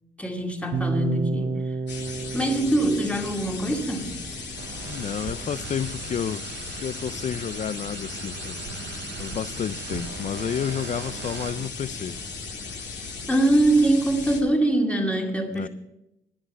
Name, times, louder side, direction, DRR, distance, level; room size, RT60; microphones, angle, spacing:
voice 1, 0.2-1.7 2.3-4.2 13.3-15.7, right 1 dB, 5° left, 2.2 m, -23 dB
sound 1, 0.7-4.8, right 3 dB, 40° right, 1.0 m, -31 dB
sound 2, 1.9-14.4, left 4 dB, 60° left, 2.4 m, -37 dB
sound 3, 4.6-11.7, right 10 dB, 65° right, 0.6 m, -40 dB
voice 2, 4.8-6.5 6.8-8.7 9.2-12.2 15.5-15.7, left 8 dB, 40° left, 0.4 m, -31 dB
11.5 x 10.0 x 5.6 m
cardioid pair, 90°, 20 cm